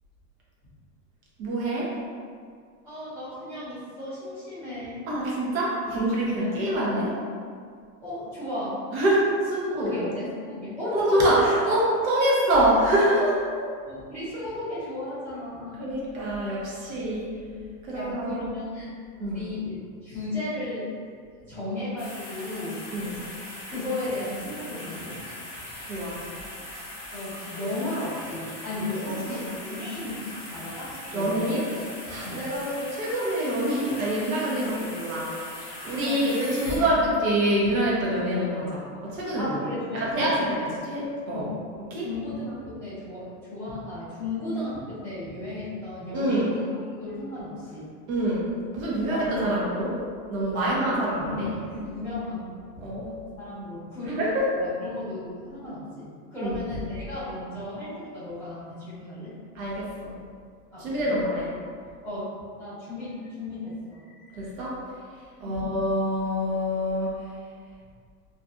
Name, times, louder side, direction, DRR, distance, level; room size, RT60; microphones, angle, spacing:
voice 1, 1.4-1.9 5.1-7.2 8.9-9.9 10.9-13.5 15.8-17.4 17.8-18.5 19.2-19.5 22.9-23.2 25.9-26.2 29.0-29.4 31.1-31.7 32.1-35.3 35.8-39.6 39.9-41.4 41.8-42.1 46.1-46.5 48.1-50.0 50.3-51.5 52.8-53.1 54.0-54.5 56.4-56.5 59.5-60.1 60.8-61.5 64.3-64.8 65.4-67.2, right 1 dB, 60° right, -5 dB, 0.8 m, -26 dB
voice 2, 2.8-5.0 6.4-6.5 8.0-8.8 9.8-11.4 13.5-15.9 17.9-18.9 19.2-20.9 21.4-22.8 23.7-25.2 27.1-31.5 32.2-32.4 36.0-36.8 39.4-40.5 41.3-41.5 42.0-46.7 47.0-47.8 49.1-49.5 50.5-52.5 53.4-54.2 54.6-59.3 60.7-61.1 62.0-62.3 62.6-64.4 65.4-65.6, left 1 dB, 5° right, -21 dB, 0.4 m, -34 dB
sound 1, 22.0-37.3 37.8-37.9, left 1 dB, 40° left, 0.7 m, -40 dB
2.6 x 2.4 x 2.4 m, 2.1 s
supercardioid pair, 180°, 47 cm